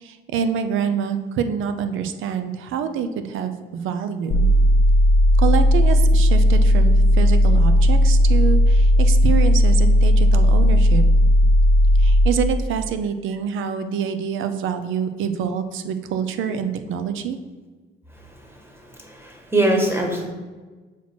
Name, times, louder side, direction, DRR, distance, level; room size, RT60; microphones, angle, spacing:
voice 1, 0.0-4.5 5.4-11.0 12.0-17.4, right 7 dB, 85° right, 9 dB, 0.6 m, -26 dB
sound 1, 4.3-12.3, equal, 50° left, 0.6 m, -15 dB
voice 2, 18.9-20.3, right 1 dB, 10° right, 1 dB, 1.4 m, -22 dB
6.0 x 4.2 x 4.3 m, 1.3 s
cardioid pair, 90°, 20 cm